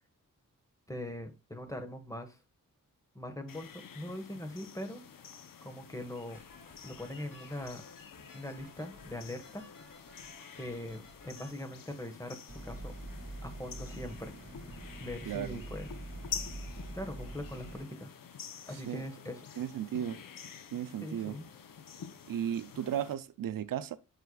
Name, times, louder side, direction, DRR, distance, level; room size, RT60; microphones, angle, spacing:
voice 1, 0.9-2.4 3.1-5.0 5.6-6.4 6.8-7.8 8.3-9.6 10.6-12.9 13.4-14.3 15.0-15.9 16.9-18.1 18.7-19.4 21.0-21.5, left 1 dB, 10° left, 1.4 m, -41 dB
sound 1, 3.5-23.1, left 7 dB, 90° left, 0.8 m, -48 dB
sound 2, 6.3-11.5, left 2 dB, 75° left, 2.3 m, -56 dB
sound 3, 12.5-17.8, right 2 dB, 40° right, 2.0 m, -44 dB
voice 2, 15.3-15.6 18.7-19.0 19.6-20.2 20.7-21.4 22.3-24.0, right 10 dB, 85° right, 0.5 m, -35 dB
8.0 x 5.8 x 2.3 m
cardioid pair, 70°, 33 cm